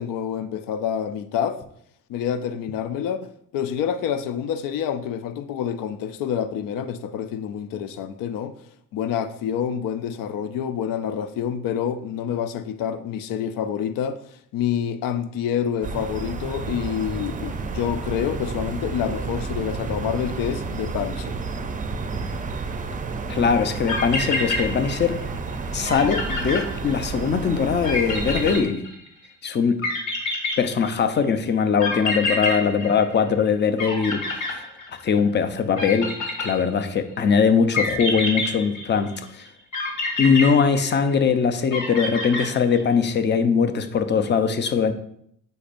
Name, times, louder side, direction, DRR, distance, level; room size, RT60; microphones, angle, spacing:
voice 1, 0.0-1.6 2.1-8.5 8.9-21.4, left 8 dB, 80° left, 0.5 m, -27 dB
sound 1, 15.8-28.6, right 4 dB, 25° right, 0.5 m, -31 dB
voice 2, 23.3-25.2 25.7-28.8 29.4-29.8 30.6-34.6 35.0-39.5 40.2-44.9, left 6 dB, 35° left, 0.7 m, -21 dB
sound 2, 23.6-23.7 23.9-25.2 25.5-25.6 25.9-27.3 27.8-29.3 29.8-31.2 31.8-33.5 33.8-35.2 35.8-37.0 37.7-39.2 39.7-41.3 41.7-42.9, left 2 dB, 65° left, 2.4 m, -27 dB
8.4 x 5.2 x 2.5 m
cardioid pair, 100°, 33 cm